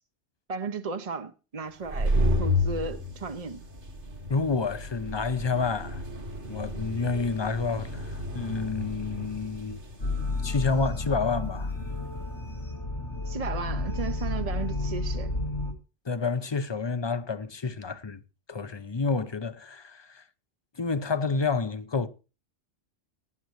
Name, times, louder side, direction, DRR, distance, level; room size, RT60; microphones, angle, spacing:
voice 1, 0.5-2.1 2.4-3.6 13.3-15.3, right 4 dB, 35° right, 0.7 m, -34 dB
sound 1, 1.7-12.2, left 1 dB, 75° right, 2.5 m, -32 dB
voice 2, 4.3-6.0 6.5-9.8 10.4-11.7 16.1-18.2 18.5-20.2 20.8-22.1, left 4 dB, 30° left, 0.6 m, -29 dB
sound 2, 10.0-15.7, left 2 dB, 80° left, 2.7 m, -31 dB
18.0 x 9.4 x 3.1 m
omnidirectional pair, 1.2 m